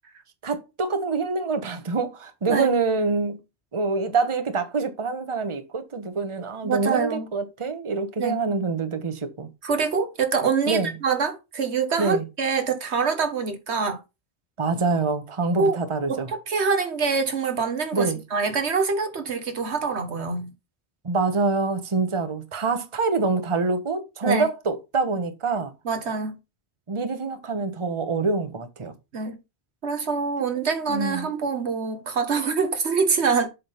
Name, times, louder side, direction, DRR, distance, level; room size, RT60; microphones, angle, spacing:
voice 1, 0.4-3.4 3.7-9.5 10.7-10.9 12.0-12.2 14.6-16.3 17.9-18.2 21.0-25.7 26.9-28.9 30.9-31.3, right 4 dB, 30° right, 1.0 m, -25 dB
voice 2, 6.6-7.3 8.2-8.4 9.6-14.0 15.6-15.8 16.1-20.5 24.2-24.4 25.8-26.4 29.1-29.4 29.8-33.5, right 5 dB, 90° right, 1.6 m, -25 dB
7.7 x 3.8 x 5.6 m
omnidirectional pair, 1.1 m